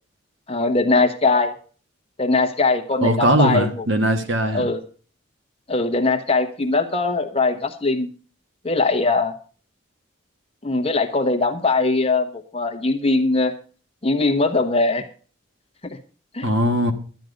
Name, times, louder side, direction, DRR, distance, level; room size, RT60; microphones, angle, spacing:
voice 1, 0.5-1.5 2.2-3.7 4.5-4.8 5.7-8.1 8.6-9.3 10.6-13.5 14.0-15.0 16.3-16.5, left 3 dB, 25° left, 1.1 m, -20 dB
voice 2, 3.0-4.7 16.4-16.9, right 1 dB, 60° right, 1.6 m, -20 dB
12.0 x 9.3 x 5.1 m
head